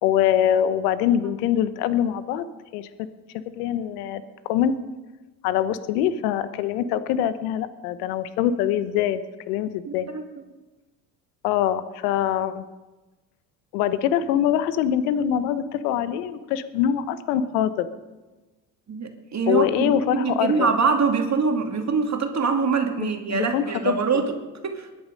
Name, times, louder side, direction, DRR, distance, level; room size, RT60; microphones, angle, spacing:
voice 1, 0.0-2.5 2.7-2.9 3.3-4.7 5.4-9.2 9.5-10.1 11.4-12.6 13.7-17.9 19.5-20.7 23.0-24.2, left 10 dB, 80° left, 13 dB, 1.1 m, -24 dB
voice 2, 9.9-10.2 18.9-24.3 24.6-24.9, right 5 dB, 35° right, 4 dB, 2.5 m, -24 dB
21.0 x 11.0 x 5.3 m, 1.2 s
hypercardioid pair, 70°, 46 cm